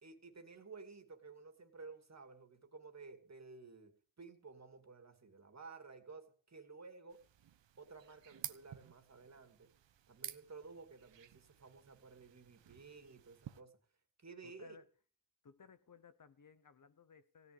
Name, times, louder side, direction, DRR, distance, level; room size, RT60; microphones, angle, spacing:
voice 1, 0.0-7.2 7.8-9.7 10.1-13.7 14.2-14.8, right 4 dB, 35° right, 2.7 m, -54 dB
sound 1, 7.1-13.6, right 10 dB, 70° right, 1.2 m, -53 dB
voice 2, 14.4-14.9 15.4-17.5, left 6 dB, 45° left, 1.0 m, -61 dB
16.5 x 6.9 x 9.7 m
cardioid pair, 100°, 45 cm